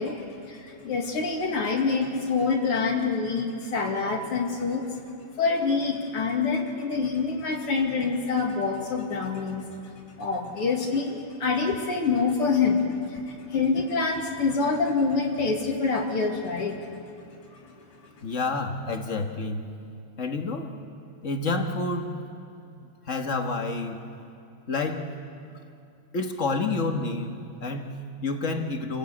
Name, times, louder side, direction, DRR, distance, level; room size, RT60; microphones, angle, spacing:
voice 1, 0.0-4.9 5.4-9.7 10.2-16.8, left 4 dB, 80° left, 0 dB, 3.2 m, -26 dB
voice 2, 18.2-19.7 20.2-20.7 21.2-22.2 23.1-24.0 24.7-25.1 26.1-29.0, left 3 dB, 35° left, 4 dB, 1.8 m, -29 dB
29.0 x 17.0 x 8.5 m, 2.7 s
omnidirectional pair, 2.4 m